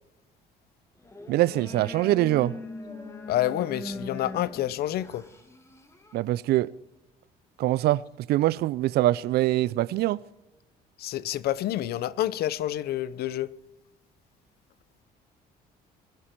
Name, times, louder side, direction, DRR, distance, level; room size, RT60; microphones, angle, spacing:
sound 1, 1.0-6.2, left 1 dB, 15° left, 2.3 m, -41 dB
voice 1, 1.3-2.6 6.1-6.7 7.6-8.0 8.3-10.2, right 16 dB, 70° right, 0.4 m, -23 dB
voice 2, 3.3-5.3 11.0-13.5, left 13 dB, 65° left, 0.7 m, -28 dB
21.5 x 11.5 x 4.5 m
cardioid pair, 110°, 17 cm